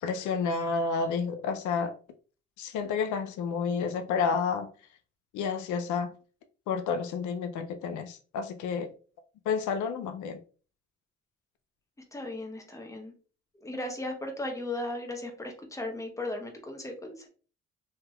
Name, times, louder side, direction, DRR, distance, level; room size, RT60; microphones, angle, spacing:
voice 1, 0.0-1.9 2.6-4.7 5.3-6.1 6.7-8.9 9.5-10.4, left 5 dB, 75° left, 0.5 m, -30 dB
voice 2, 12.1-13.1 13.6-17.3, left 2 dB, 10° left, 0.8 m, -36 dB
3.4 x 2.8 x 2.3 m
cardioid pair, 90°, 30 cm